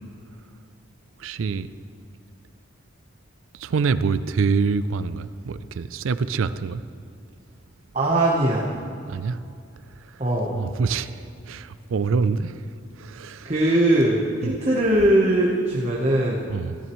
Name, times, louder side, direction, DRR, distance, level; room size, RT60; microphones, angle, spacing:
voice 1, 1.2-1.7 3.5-6.8 9.1-9.4 10.1-10.2 10.5-12.7 13.0-13.5 14.4-14.5 16.5-16.8, right 5 dB, 85° right, 13 dB, 0.4 m, -26 dB
voice 2, 7.9-8.7 10.2-10.6 13.4-16.5, right 1 dB, 35° right, -3 dB, 1.0 m, -20 dB
15.5 x 12.5 x 3.1 m, 2.5 s
head